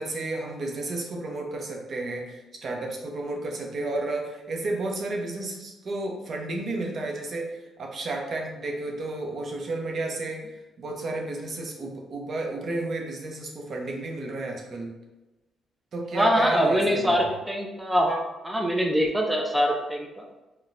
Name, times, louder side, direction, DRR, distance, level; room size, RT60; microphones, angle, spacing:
voice 1, 0.0-14.9 15.9-17.4, right 2 dB, 50° right, 1 dB, 0.6 m, -32 dB
voice 2, 16.1-20.2, equal, 5° right, 0 dB, 0.4 m, -24 dB
3.9 x 2.2 x 2.5 m, 1.1 s
cardioid pair, 90°, 0 cm